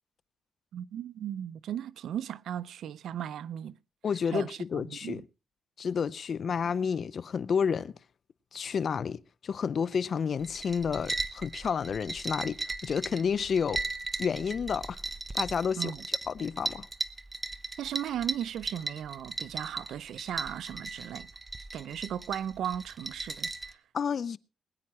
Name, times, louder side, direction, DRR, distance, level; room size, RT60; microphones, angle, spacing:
voice 1, 0.7-3.8 4.3-5.2 15.8-16.1 17.8-21.3 21.7-23.8, right 10 dB, 80° right, 0.6 m, -36 dB
voice 2, 4.0-5.2 5.8-7.9 8.5-13.8 14.2-15.0 15.3-16.9 23.9-24.4, left 6 dB, 55° left, 0.6 m, -30 dB
sound 1, 10.4-23.7, right 3 dB, 20° right, 1.0 m, -37 dB
21.0 x 9.7 x 4.4 m
cardioid pair, 100°, 0 cm